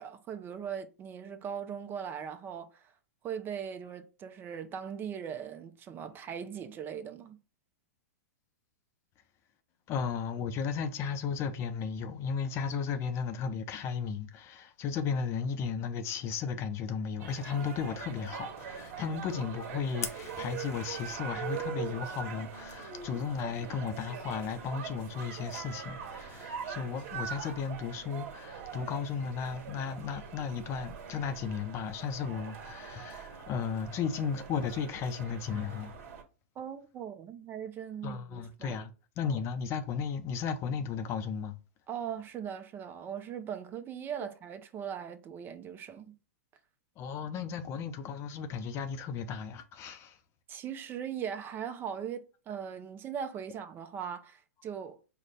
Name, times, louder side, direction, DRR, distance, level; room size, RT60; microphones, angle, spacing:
voice 1, 0.0-2.9 3.2-7.4 36.6-38.8 41.9-46.1 50.5-55.0, right 8 dB, 25° right, 0.6 m, -39 dB
voice 2, 9.9-35.9 38.0-38.9 39.2-41.6 47.0-50.2, left 6 dB, 35° left, 0.5 m, -35 dB
sound 1, 17.2-36.2, right 7 dB, 50° right, 1.4 m, -42 dB
Fire, 20.0-21.2, left 5 dB, 85° left, 0.8 m, -41 dB
4.9 x 2.2 x 4.0 m
hypercardioid pair, 120°, 8 cm